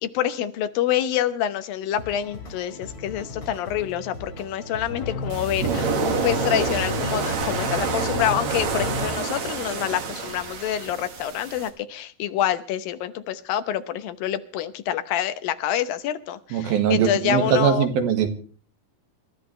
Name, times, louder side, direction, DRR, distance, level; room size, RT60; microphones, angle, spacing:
voice 1, 0.0-17.9, left 10 dB, 75° left, 2.7 m, -27 dB
sound 1, 1.9-9.2, left 2 dB, 35° left, 3.7 m, -40 dB
sound 2, 4.9-9.1, left 3 dB, 60° left, 1.1 m, -32 dB
sound 3, 5.3-11.7, right 5 dB, 55° right, 2.8 m, -28 dB
voice 2, 16.5-18.3, right 8 dB, 80° right, 3.4 m, -21 dB
27.5 x 13.0 x 3.2 m
omnidirectional pair, 4.2 m